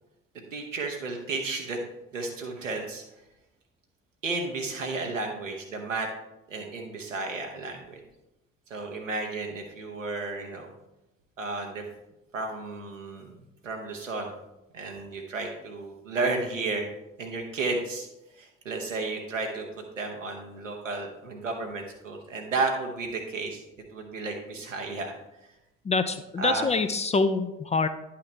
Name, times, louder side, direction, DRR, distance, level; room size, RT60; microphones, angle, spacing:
voice 1, 0.3-1.8 2.1-3.0 4.2-6.1 6.5-8.0 8.7-10.7 11.4-11.8 12.3-13.4 13.6-14.3 14.7-16.9 17.2-18.1 18.3-23.6 23.9-25.1 26.4-26.7, right 3 dB, 85° right, 2 dB, 1.0 m, -32 dB
voice 2, 25.9-27.9, left 4 dB, 20° left, 9 dB, 0.4 m, -25 dB
10.5 x 5.7 x 3.2 m, 0.93 s
figure-of-eight pair, 50°, 38 cm